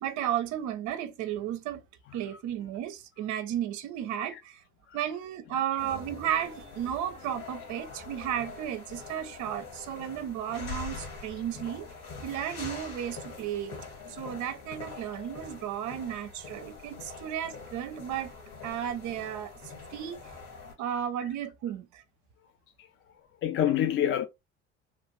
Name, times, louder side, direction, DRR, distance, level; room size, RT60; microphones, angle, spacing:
voice 1, 0.0-1.8 2.1-4.6 4.9-11.9 12.2-13.8 14.0-18.3 18.6-20.3 20.8-22.0, right 10 dB, 55° right, 0.6 m, -34 dB
sound 1, 5.8-20.7, left 4 dB, 60° left, 2.2 m, -44 dB
voice 2, 23.4-24.3, left 10 dB, 35° left, 0.4 m, -27 dB
3.1 x 2.5 x 3.0 m
hypercardioid pair, 70°, 36 cm